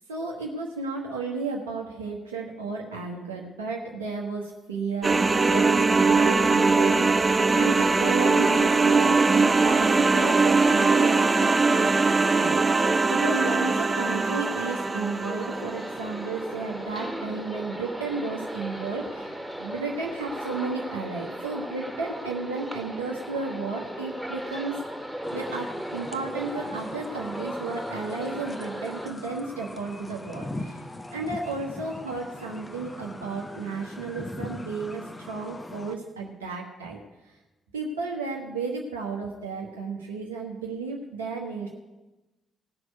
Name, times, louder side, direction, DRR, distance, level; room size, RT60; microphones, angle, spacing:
voice 1, 0.1-24.8 25.3-30.8 31.1-37.0 37.7-41.7, right 4 dB, 80° right, -2 dB, 1.1 m, -33 dB
sound 1, 5.0-15.8, right 3 dB, 30° right, 0.7 m, -21 dB
sound 2, 14.0-29.1, equal, ahead, 2.1 m, -37 dB
sound 3, 25.2-36.0, left 1 dB, 20° left, 1.1 m, -40 dB
17.5 x 6.2 x 8.1 m, 1.1 s
figure-of-eight pair, 40°, 0 cm